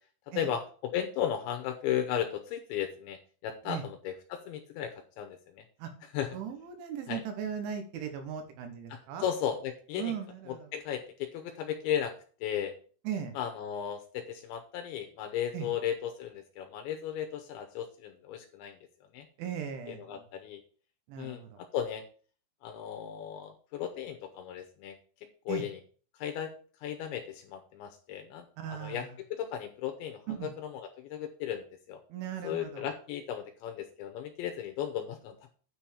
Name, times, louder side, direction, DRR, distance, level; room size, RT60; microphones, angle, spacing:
voice 1, 0.3-3.2 3.4-5.6 6.1-6.4 7.1-7.2 8.9-10.1 10.5-12.1 12.4-12.7 13.4-18.8 19.1-19.3 19.9-20.6 21.2-21.4 21.7-22.0 22.6-25.0 25.5-25.8 26.1-26.5 26.8-28.5 28.7-32.0 32.4-35.5, left 9 dB, 80° left, 6 dB, 2.8 m, -35 dB
voice 2, 6.3-9.3 10.0-10.7 13.1-13.4 15.5-15.7 19.4-20.3 21.1-21.6 25.5-25.7 28.6-29.2 30.3-30.5 32.1-32.9, right 8 dB, 75° right, 6 dB, 3.5 m, -38 dB
9.5 x 4.4 x 7.0 m, 0.42 s
omnidirectional pair, 5.8 m